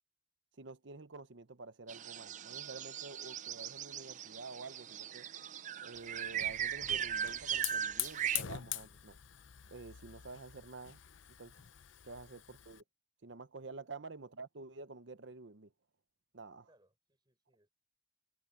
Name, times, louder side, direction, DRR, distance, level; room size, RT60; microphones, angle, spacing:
voice 1, 0.6-5.3 5.8-9.2 9.7-11.0 11.4-11.6 12.0-12.8 13.2-15.7 16.3-16.7, right 3 dB, 70° right, 0.9 m, -49 dB
sound 1, 1.9-8.4, right 9 dB, 40° right, 0.5 m, -39 dB
Hiss / Fire, 5.9-12.8, left 13 dB, 80° left, 0.7 m, -44 dB
voice 2, 16.7-17.7, right 1 dB, 20° right, 6.0 m, -71 dB
head